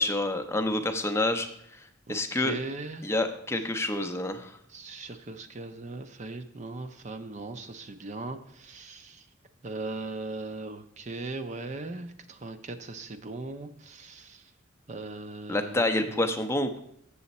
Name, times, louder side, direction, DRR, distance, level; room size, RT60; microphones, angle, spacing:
voice 1, 0.0-2.5 3.0-4.5 15.5-16.8, left 2 dB, 15° left, 7 dB, 0.5 m, -28 dB
voice 2, 2.1-3.1 4.7-9.3 9.6-14.5 14.9-16.3, right 2 dB, 35° right, 8 dB, 0.5 m, -39 dB
7.6 x 7.0 x 4.1 m, 0.71 s
head